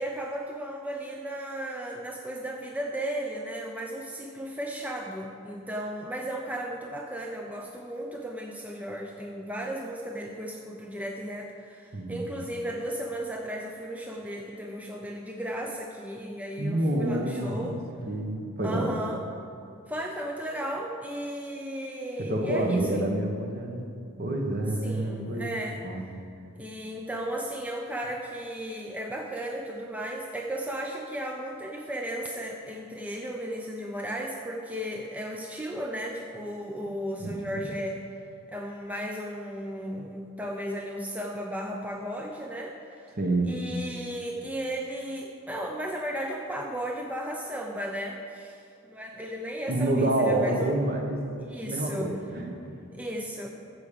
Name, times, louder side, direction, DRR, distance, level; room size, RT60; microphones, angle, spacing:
voice 1, 0.0-17.8 18.6-19.2 19.9-23.1 24.8-25.8 26.6-38.0 38.5-43.2 43.5-50.7 51.5-52.1 52.9-53.5, right 1 dB, 5° right, 1 dB, 0.5 m, -35 dB
voice 2, 16.6-17.7 18.1-18.9 22.3-23.9 24.2-25.5 25.8-26.1 37.2-37.6 43.2-43.5 49.7-51.2 51.6-52.8, right 1 dB, 45° right, 2 dB, 1.2 m, -28 dB
14.5 x 4.9 x 6.9 m, 2.5 s
head